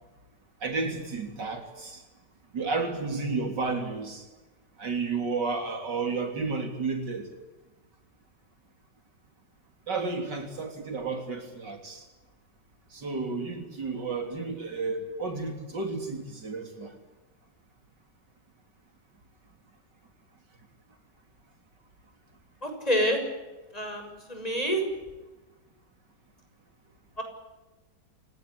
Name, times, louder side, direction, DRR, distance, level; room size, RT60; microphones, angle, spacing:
voice 1, 0.6-2.0 2.5-4.2 4.8-7.3 9.9-12.0 12.9-17.0, right 4 dB, 80° right, 6 dB, 4.0 m, -32 dB
voice 2, 22.6-23.2 23.7-24.8 27.2-27.3, equal, 20° left, 4 dB, 6.9 m, -27 dB
28.0 x 17.5 x 9.6 m, 1.1 s
omnidirectional pair, 1.9 m